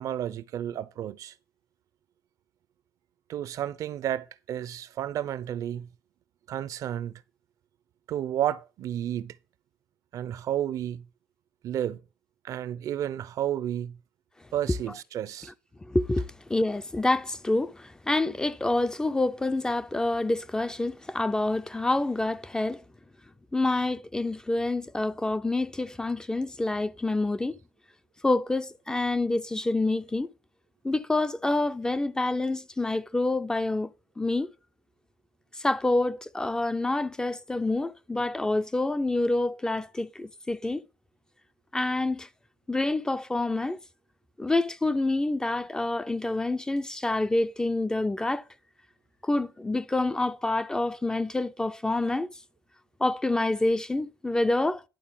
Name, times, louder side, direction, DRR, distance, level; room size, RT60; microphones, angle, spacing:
voice 1, 0.0-1.3 3.3-5.9 6.5-7.2 8.1-9.4 10.1-11.0 11.6-12.0 12.4-14.0 14.5-15.5, right 11 dB, 55° right, 0.5 m, -31 dB
voice 2, 15.8-22.8 23.5-27.6 28.2-30.3 30.8-33.9 34.2-34.5 35.5-40.8 41.7-42.3 42.7-43.8 44.4-48.4 49.2-52.3 53.0-54.8, left 2 dB, 10° left, 0.4 m, -27 dB
10.5 x 4.0 x 7.4 m
cardioid pair, 140°, 7 cm